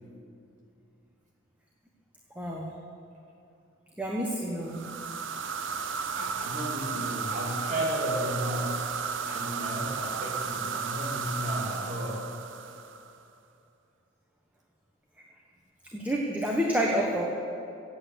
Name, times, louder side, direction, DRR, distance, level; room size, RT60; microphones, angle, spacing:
voice 1, 2.3-2.7 4.0-4.8 15.9-17.2, equal, 10° right, -2 dB, 1.2 m, -28 dB
sound 1, 4.6-13.2, right 6 dB, 60° right, 0.7 m, -34 dB
voice 2, 6.1-8.9 9.2-12.3, right 1 dB, 35° right, -3 dB, 2.5 m, -33 dB
16.5 x 8.4 x 8.1 m, 2.7 s
head